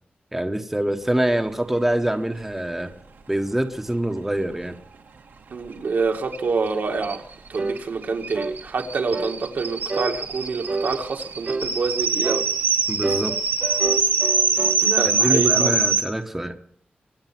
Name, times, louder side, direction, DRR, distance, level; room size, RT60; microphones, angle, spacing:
voice 1, 0.3-2.9 3.3-4.8 12.9-13.4 15.0-16.6, right 1 dB, 10° right, 1.1 m, -25 dB
voice 2, 5.5-7.2 7.5-12.4 14.8-15.8, right 4 dB, 65° right, 2.0 m, -26 dB
sound 1, 6.3-6.4 6.7-6.8 7.0-16.0, right 5 dB, 85° right, 2.7 m, -23 dB
sound 2, 7.6-7.8 8.3-8.6 9.1-9.4 9.9-10.1 10.7-10.9 11.5-11.7 12.2-12.5 13.0-14.8, right 3 dB, 40° right, 1.2 m, -28 dB
25.5 x 8.8 x 5.9 m
wide cardioid pair, 160°, 3 cm